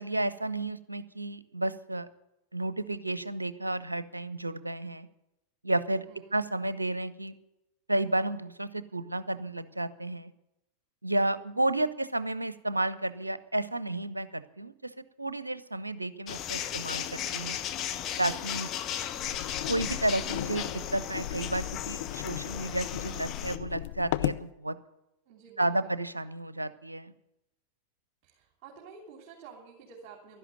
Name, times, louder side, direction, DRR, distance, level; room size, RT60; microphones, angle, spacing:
voice 1, 0.0-2.1 2.5-5.1 5.6-6.1 6.3-7.3 7.9-10.3 11.0-14.9 15.2-17.6 18.2-18.7 19.7-24.8 25.6-27.1, right 1 dB, 85° right, 15 dB, 0.7 m, -32 dB
voice 2, 6.1-6.4 25.3-26.0 28.2-30.4, right 5 dB, 40° right, -1 dB, 3.3 m, -50 dB
sound 1, 16.3-23.6, left 10 dB, 35° left, 1.1 m, -36 dB
sound 2, 19.1-24.5, left 15 dB, 50° left, 0.6 m, -36 dB
12.5 x 11.0 x 9.1 m, 0.88 s
figure-of-eight pair, 90°, 0 cm